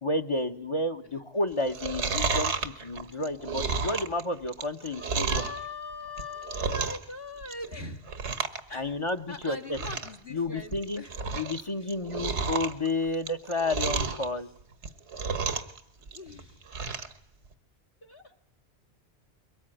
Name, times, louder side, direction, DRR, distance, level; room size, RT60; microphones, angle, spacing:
voice 1, 0.0-5.5 8.7-9.8 10.3-11.0 11.3-14.5, left 2 dB, 30° left, 7 dB, 1.1 m, -31 dB
Chewing mastication, 1.6-5.6 6.1-7.1 7.4-7.7 8.1-8.6 8.9-9.0 9.4-9.5 9.7-10.2 10.6-11.6 11.9-14.3 14.7-15.8 16.1-17.1 17.5-17.6, right 4 dB, 85° right, 1.7 m, -31 dB
voice 2, 2.2-2.6 3.6-3.7 5.0-8.0 8.7-11.4 11.8-11.9 16.1-16.6 18.0-18.3, left 3 dB, 60° left, 0 dB, 2.1 m, -42 dB
22.5 x 19.0 x 9.2 m, 0.81 s
omnidirectional pair, 1.1 m